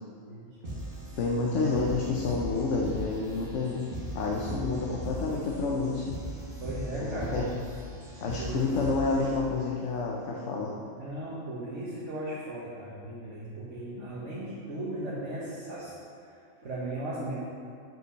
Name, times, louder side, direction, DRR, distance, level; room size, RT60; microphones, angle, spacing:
sound 1, 0.6-9.6, right 1 dB, 45° right, 2.1 m, -39 dB
voice 1, 1.2-3.8 4.1-6.1 7.0-7.5 8.2-10.7 14.0-14.1, left 3 dB, 75° left, -2 dB, 1.1 m, -29 dB
voice 2, 4.5-5.0 6.6-7.5 8.4-8.8 11.0-17.3, right 1 dB, 75° right, -8 dB, 1.7 m, -37 dB
7.7 x 5.6 x 6.3 m, 2.4 s
omnidirectional pair, 1.3 m